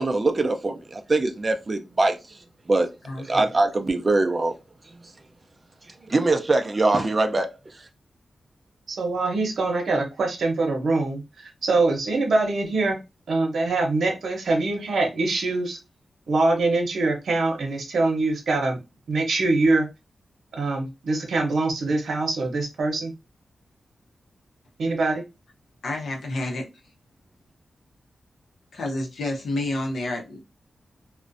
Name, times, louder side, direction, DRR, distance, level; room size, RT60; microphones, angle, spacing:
voice 1, 0.0-2.2 2.7-2.9 3.2-4.5 6.1-7.5 7.8-7.9, right 2 dB, 30° right, 0.4 m, -22 dB
voice 2, 3.1-3.5 25.8-26.7 28.7-30.4, left 2 dB, 85° left, 0.7 m, -29 dB
voice 3, 8.9-13.0 13.3-15.8 16.3-18.8 19.1-19.9 20.5-23.1 24.8-25.2, right 3 dB, 80° right, 0.7 m, -24 dB
2.5 x 2.1 x 2.5 m
wide cardioid pair, 140°, 0 cm